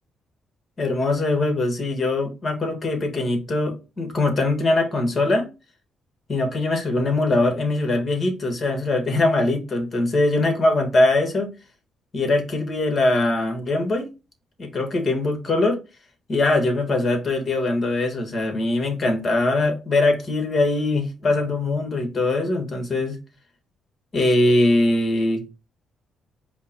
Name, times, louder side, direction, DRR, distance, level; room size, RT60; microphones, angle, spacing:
voice 1, 0.8-5.5 6.3-11.5 12.1-14.1 14.6-15.8 16.3-23.2 24.1-25.5, left 2 dB, 40° left, 1.5 m, -22 dB
5.1 x 2.2 x 4.4 m
cardioid pair, 90°, 0 cm